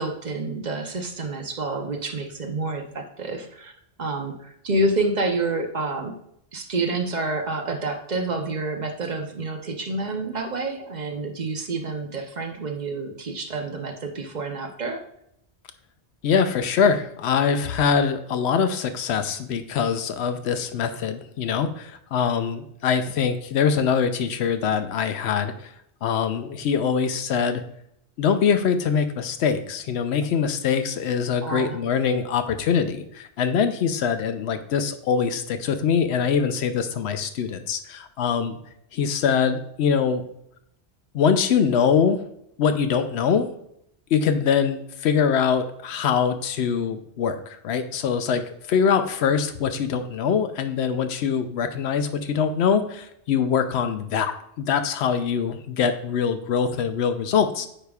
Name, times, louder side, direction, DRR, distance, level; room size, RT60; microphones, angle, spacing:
voice 1, 0.0-3.7 4.0-6.1 6.5-15.0 31.4-31.8, right 2 dB, 45° right, 4 dB, 0.9 m, -28 dB
voice 2, 16.2-25.7 26.0-27.6 28.2-38.6 38.9-40.2 41.1-42.2 42.6-43.5 44.1-57.7, left 6 dB, 75° left, 10 dB, 0.8 m, -23 dB
8.8 x 5.0 x 2.3 m, 0.74 s
omnidirectional pair, 1.1 m